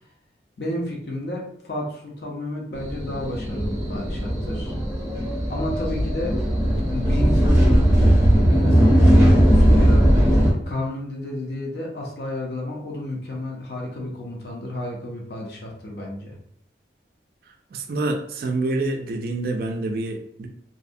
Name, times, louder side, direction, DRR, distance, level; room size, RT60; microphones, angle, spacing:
voice 1, 0.6-4.7 5.5-6.4 6.9-7.9 8.4-10.1 10.7-16.4, left 1 dB, 65° left, -2 dB, 0.5 m, -31 dB
sound 1, 2.8-10.5, equal, 15° right, 0.6 m, -18 dB
voice 2, 17.7-20.5, right 2 dB, 55° right, 4 dB, 0.3 m, -27 dB
2.6 x 2.1 x 2.5 m, 0.68 s
head